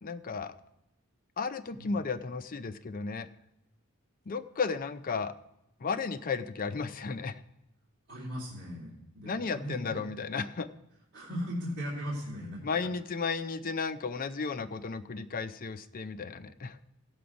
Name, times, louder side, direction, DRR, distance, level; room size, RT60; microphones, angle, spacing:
voice 1, 0.0-0.6 1.4-3.3 4.2-5.3 5.8-7.4 9.2-10.7 12.6-16.8, left 4 dB, 40° left, 11 dB, 0.5 m, -34 dB
voice 2, 8.1-10.0 11.1-12.7, equal, 50° right, -7 dB, 2.4 m, -38 dB
15.5 x 6.9 x 5.2 m, 0.88 s
head